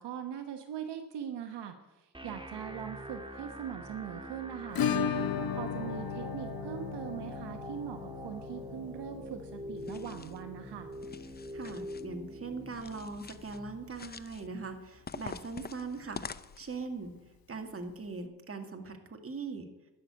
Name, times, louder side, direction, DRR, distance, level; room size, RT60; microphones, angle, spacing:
voice 1, 0.0-5.2 5.5-10.9, right 9 dB, 70° right, 7 dB, 1.1 m, -41 dB
sound 1, 2.1-16.1, equal, 10° right, 1.8 m, -45 dB
Acoustic guitar / Strum, 4.7-13.4 13.6-13.7 14.0-14.1 14.5-14.6 16.6-16.7 17.8-17.9, left 7 dB, 55° left, 1.0 m, -37 dB
sound 2, 9.8-10.4 10.9-12.1 12.7-13.6 13.9-14.5 15.1-16.8, left 5 dB, 25° left, 0.6 m, -46 dB
voice 2, 11.5-16.2 16.6-17.1 17.5-19.7, right 4 dB, 30° right, 5 dB, 2.1 m, -40 dB
12.0 x 6.8 x 9.3 m, 1.1 s
supercardioid pair, 60°, 42 cm